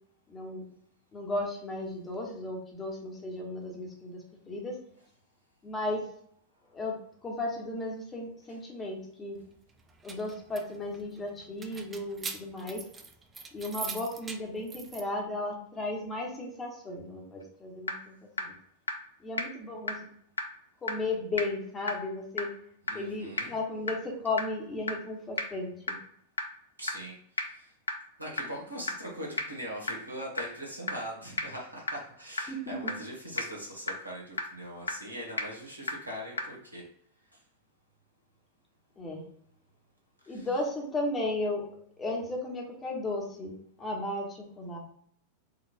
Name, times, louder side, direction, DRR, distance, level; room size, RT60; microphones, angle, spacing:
voice 1, 0.3-0.6 1.1-4.8 5.6-6.1 6.7-7.0 7.2-9.4 10.0-12.8 13.5-18.5 19.2-20.0 20.8-22.5 22.9-26.0 32.5-32.7 39.0-39.2 40.3-41.7 42.0-44.8, left 2 dB, 20° left, -1 dB, 1.2 m, -35 dB
sound 1, 9.8-15.0, right 4 dB, 20° right, 0.5 m, -42 dB
sound 2, 17.4-17.5 17.9-18.0 18.4-18.5 18.9-19.0 19.4-19.5 19.9-20.0 20.4-20.5 20.9-21.0 21.4-21.5 21.9-22.0 22.4-22.5 22.9-23.0 23.4-23.5 23.9-24.0 24.4-24.5 24.9-25.0 25.4-25.5 25.9-26.0 26.4-26.5 26.9-27.0 27.4-27.5 27.9-28.0 28.4-28.5 28.9-29.0 29.4-29.5 29.9-30.0 30.4-30.5 30.9-31.0 31.4-31.5 31.9-32.0 32.4-32.5 32.9-33.0 33.4-33.5 33.9-34.0 34.4-34.5 34.9-35.0 35.4-35.5 35.9-36.0 36.4-36.5, left 2 dB, 80° left, 0.5 m, -30 dB
voice 2, 22.8-23.5 26.8-27.2 27.4-27.7 28.2-36.8 40.2-40.5, equal, 85° right, -2 dB, 1.5 m, -41 dB
4.7 x 3.0 x 2.5 m, 0.64 s
figure-of-eight pair, 90°, 0 cm